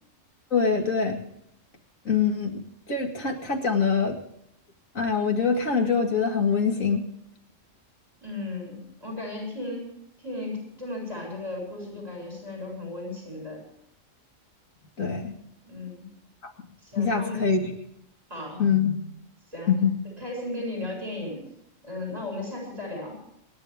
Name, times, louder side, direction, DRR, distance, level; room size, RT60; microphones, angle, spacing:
voice 1, 0.5-1.2 2.0-2.6 2.9-4.2 4.9-7.0 15.0-15.4 16.4-16.5 17.0-17.6 18.6-19.0 19.7-19.9, left 5 dB, 80° left, 2 dB, 2.6 m, -24 dB
voice 2, 8.2-9.9 10.2-13.6 15.6-16.1 16.8-17.4 18.3-18.6 19.5-19.7 20.0-21.4 21.8-23.2, left 2 dB, 30° right, 0 dB, 7.8 m, -35 dB
27.0 x 10.5 x 3.6 m, 0.74 s
omnidirectional pair, 1.4 m